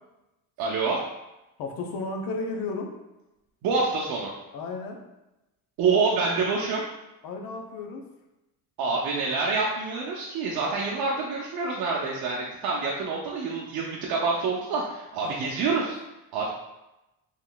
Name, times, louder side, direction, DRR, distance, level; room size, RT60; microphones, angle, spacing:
voice 1, 0.6-1.0 3.6-4.3 5.8-6.8 8.8-16.0 16.3-16.5, right 4 dB, 75° right, -3 dB, 0.6 m, -27 dB
voice 2, 1.6-2.9 4.5-5.0 7.2-8.0 15.2-15.5, left 3 dB, 65° left, 3 dB, 0.6 m, -33 dB
3.8 x 3.1 x 2.2 m, 0.95 s
cardioid pair, 145°, 37 cm